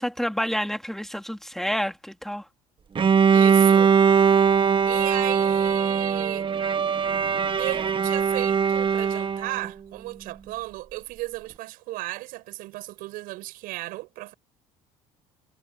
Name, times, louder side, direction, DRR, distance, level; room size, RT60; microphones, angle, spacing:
voice 1, 0.0-2.4, equal, ahead, 2.6 m, -29 dB
Bowed string instrument, 3.0-9.7, right 7 dB, 35° right, 1.4 m, -21 dB
voice 2, 3.3-4.0 4.9-6.5 7.6-14.3, right 19 dB, 75° right, 6.0 m, -34 dB
supercardioid pair, 85°, 15 cm